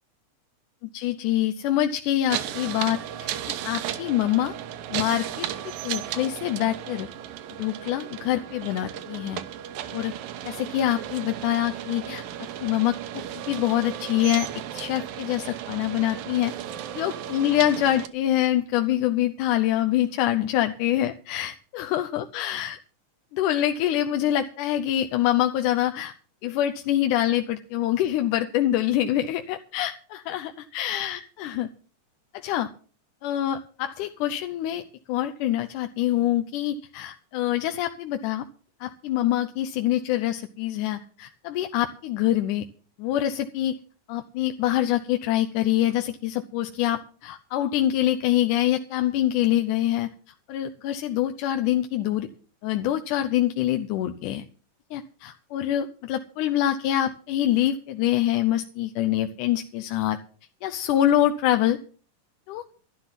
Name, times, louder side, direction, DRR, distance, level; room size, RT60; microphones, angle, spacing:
voice 1, 0.9-3.3 3.6-4.6 4.9-5.5 5.8-7.1 7.6-9.4 9.9-10.1 10.5-12.2 12.6-16.5 17.0-22.8 23.3-26.1 26.4-31.7 32.3-32.7 33.2-34.8 35.1-38.4 38.8-42.6 43.0-43.7 44.1-50.1 50.5-52.3 52.6-54.4 54.9-60.2 60.6-61.8 62.5-62.6, left 12 dB, 75° left, 7 dB, 2.2 m, -25 dB
sound 1, 2.3-18.1, right 11 dB, 85° right, 2.8 m, -35 dB
12.0 x 12.0 x 5.8 m, 0.41 s
omnidirectional pair, 3.8 m